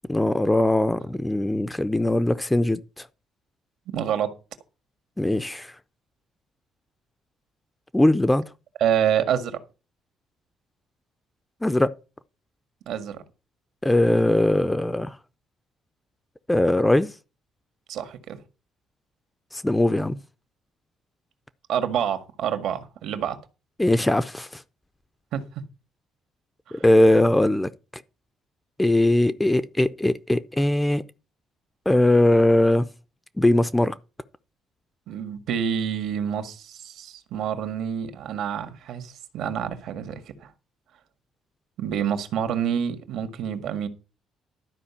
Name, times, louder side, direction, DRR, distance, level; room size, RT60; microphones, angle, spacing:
voice 1, 0.1-3.1 5.2-5.7 7.9-8.4 11.6-11.9 13.8-15.2 16.5-17.1 19.5-20.2 23.8-24.6 26.8-28.0 28.8-31.0 31.9-32.9 33.4-33.9, left 1 dB, 5° left, 0.5 m, -20 dB
voice 2, 3.9-4.4 8.8-9.6 12.9-13.2 17.9-18.4 21.7-23.4 25.3-25.4 26.7-26.8 35.1-40.5 41.8-43.9, right 9 dB, 65° right, 1.7 m, -27 dB
12.5 x 5.1 x 7.0 m
cardioid pair, 175°, 0 cm